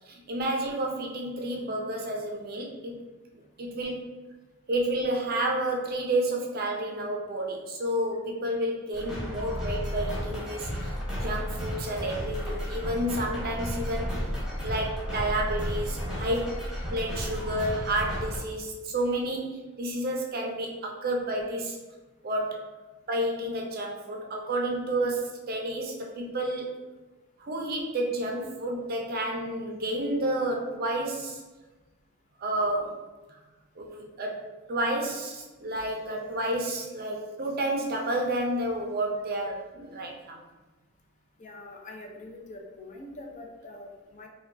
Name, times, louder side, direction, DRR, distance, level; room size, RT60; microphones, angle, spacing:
voice 1, 0.1-3.0 3.6-4.1 4.7-10.9 11.2-16.6 16.9-21.8 22.2-22.7 23.1-26.7 27.4-31.4 32.4-33.0 33.3-33.4 33.8-40.4, right 1 dB, 45° right, 1 dB, 0.5 m, -30 dB
sound 1, 8.9-18.4, equal, 5° right, 1.0 m, -33 dB
voice 2, 41.4-44.3, left 2 dB, 35° left, 1 dB, 0.5 m, -44 dB
4.5 x 2.3 x 2.6 m, 1.2 s
head